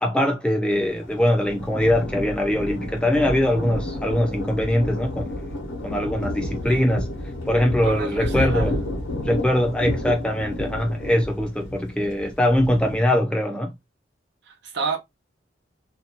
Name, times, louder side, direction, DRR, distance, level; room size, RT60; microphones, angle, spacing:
voice 1, 0.0-5.3 5.8-7.0 7.5-8.8 9.3-13.7, left 1 dB, 5° left, 0.3 m, -22 dB
Thunder, 0.7-13.0, left 1 dB, 85° left, 0.9 m, -31 dB
voice 2, 7.8-8.7 14.5-15.0, right 4 dB, 60° right, 0.6 m, -29 dB
2.6 x 2.2 x 2.7 m
head